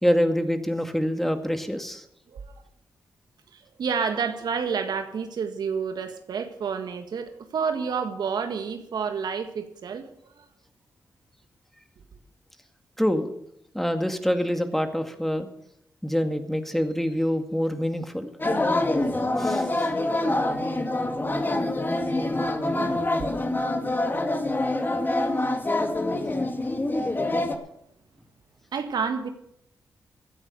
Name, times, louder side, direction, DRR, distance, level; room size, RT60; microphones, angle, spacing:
voice 1, 0.0-2.0 13.0-13.3 13.7-15.5 16.0-18.3 19.4-19.7, equal, 5° left, 2.1 m, -25 dB
voice 2, 3.5-10.1 10.4-10.5 22.7-23.0 28.7-29.3, right 6 dB, 70° right, 1.7 m, -29 dB
sound 1, 18.4-27.5, left 2 dB, 25° left, 2.2 m, -25 dB
16.0 x 9.6 x 6.6 m
supercardioid pair, 45°, 7 cm